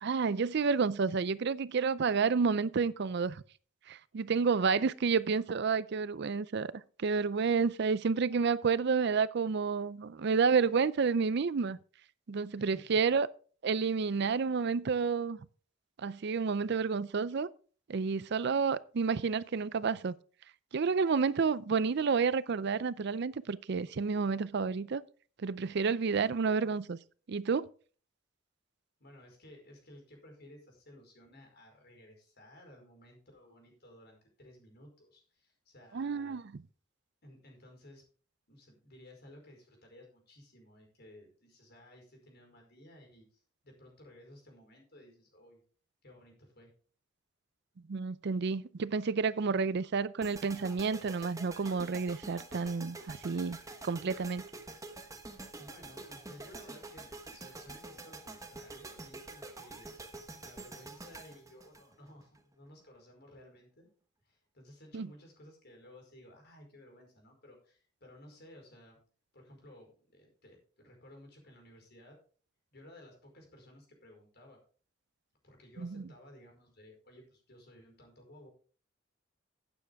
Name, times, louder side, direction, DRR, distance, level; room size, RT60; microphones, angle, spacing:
voice 1, 0.0-3.4 3.9-6.7 7.0-11.8 12.3-13.3 13.6-15.4 16.0-17.5 17.9-20.1 20.7-25.0 25.4-27.0 27.3-27.7 35.9-36.4 47.9-53.6 53.8-54.4 64.9-65.1 75.8-76.1, right 5 dB, 55° right, 0.5 m, -30 dB
voice 2, 12.6-13.0 29.0-36.4 37.2-38.0 38.5-45.6 46.0-46.7 49.4-49.6 55.6-59.9 60.4-63.9 64.2-69.0 69.3-72.2 72.7-74.6 75.4-78.5, left 1 dB, 55° left, 4.9 m, -56 dB
sound 1, 50.2-62.4, right 2 dB, 15° right, 1.2 m, -47 dB
12.0 x 9.1 x 3.5 m
head